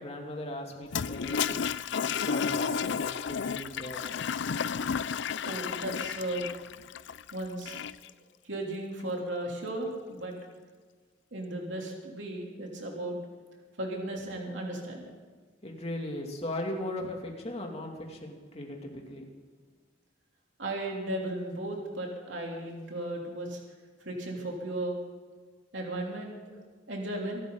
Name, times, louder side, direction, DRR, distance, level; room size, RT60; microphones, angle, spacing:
voice 1, 0.0-1.6 2.0-4.0 15.6-19.2, left 1 dB, 35° left, 1 dB, 2.8 m, -38 dB
Toilet flush, 0.8-8.1, left 7 dB, 65° left, 0.5 m, -32 dB
voice 2, 5.4-6.4 7.3-7.8 8.4-10.3 11.3-13.2 13.8-15.0 20.6-23.6 24.0-25.0 25.7-26.4 26.9-27.4, right 1 dB, 70° right, 0 dB, 3.4 m, -35 dB
25.0 x 13.0 x 4.1 m, 1.5 s
head